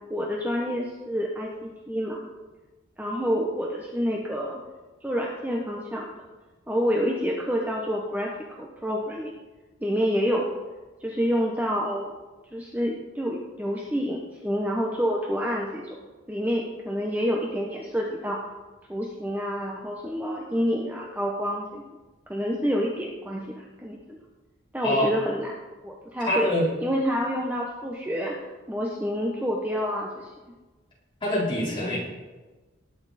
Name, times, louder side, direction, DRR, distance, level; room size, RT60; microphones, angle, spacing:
voice 1, 0.1-2.2 3.0-4.6 5.0-6.1 6.7-8.3 8.6-9.4 9.8-10.5 11.0-12.2 12.5-15.9 16.3-18.4 18.9-21.8 22.3-24.2 24.7-25.5 25.8-26.5 26.8-28.3 28.7-30.3, equal, 10° right, -2 dB, 1.0 m, -28 dB
voice 2, 26.3-26.7 31.2-32.0, left 1 dB, 25° left, -7 dB, 4.3 m, -24 dB
19.0 x 8.6 x 4.3 m, 1.2 s
head